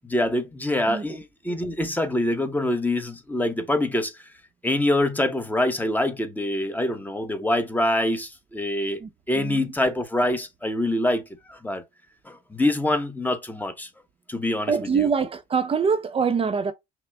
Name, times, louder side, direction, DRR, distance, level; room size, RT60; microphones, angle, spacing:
voice 1, 0.0-4.1 4.6-9.0 9.3-11.2 11.5-11.8 12.3-13.9 14.3-15.1, left 1 dB, 10° left, 0.9 m, -25 dB
voice 2, 9.3-9.7 14.7-16.7, right 6 dB, 30° right, 0.7 m, -24 dB
5.9 x 2.1 x 3.4 m
cardioid pair, 110°, 18 cm